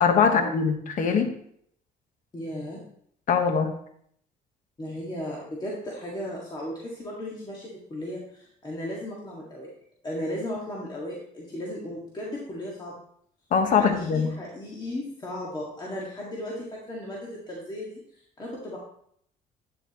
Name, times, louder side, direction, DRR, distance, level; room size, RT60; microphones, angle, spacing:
voice 1, 0.0-1.3 3.3-3.7 13.5-14.3, left 6 dB, 50° left, 6 dB, 1.2 m, -22 dB
voice 2, 2.3-2.8 4.8-9.7 10.0-12.9 13.7-18.0 18.4-18.8, left 1 dB, 25° left, -4 dB, 1.8 m, -35 dB
9.1 x 7.4 x 3.0 m, 0.67 s
cardioid pair, 110°, 17 cm